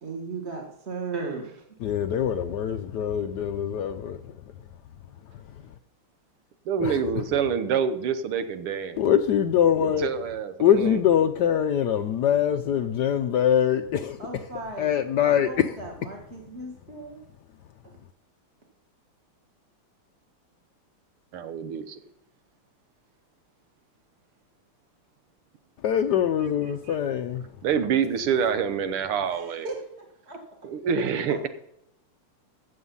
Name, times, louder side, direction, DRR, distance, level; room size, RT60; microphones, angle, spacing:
voice 1, 0.0-1.6 14.2-15.0 15.4-17.2 29.3-29.8 30.3-30.4, right 3 dB, 30° right, 2.0 m, -36 dB
voice 2, 1.8-4.2 6.8-7.0 9.0-10.1 10.6-14.2 14.8-15.7 25.8-27.4, left 9 dB, 75° left, 0.9 m, -23 dB
voice 3, 6.7-9.0 9.8-11.0 21.3-22.0 26.9-27.0 27.6-29.7 30.6-31.5, right 7 dB, 80° right, 2.0 m, -27 dB
14.5 x 7.8 x 5.5 m
omnidirectional pair, 2.4 m